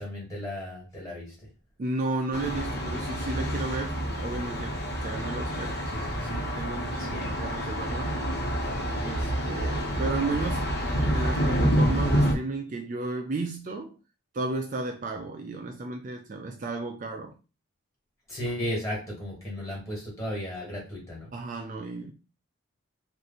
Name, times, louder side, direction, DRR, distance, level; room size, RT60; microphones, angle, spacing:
voice 1, 0.0-1.5 7.0-7.4 18.3-21.3, equal, 15° left, 1.7 m, -35 dB
voice 2, 1.8-8.3 9.0-10.7 11.1-14.0 14.3-17.4 21.3-22.1, right 2 dB, 40° right, 0.4 m, -33 dB
Thunder, 2.3-12.3, equal, 50° left, 1.1 m, -28 dB
3.1 x 2.6 x 4.0 m
head